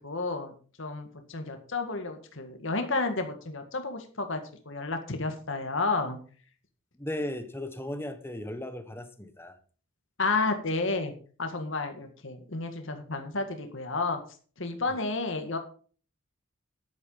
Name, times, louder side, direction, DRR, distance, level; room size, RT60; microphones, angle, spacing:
voice 1, 0.0-0.5 0.8-6.2 10.2-11.1 11.4-14.2 14.6-15.6, left 3 dB, 60° left, 6 dB, 1.8 m, -31 dB
voice 2, 7.0-9.6 14.9-15.0, left 1 dB, 10° left, 10 dB, 1.2 m, -36 dB
11.0 x 8.8 x 5.5 m, 0.42 s
head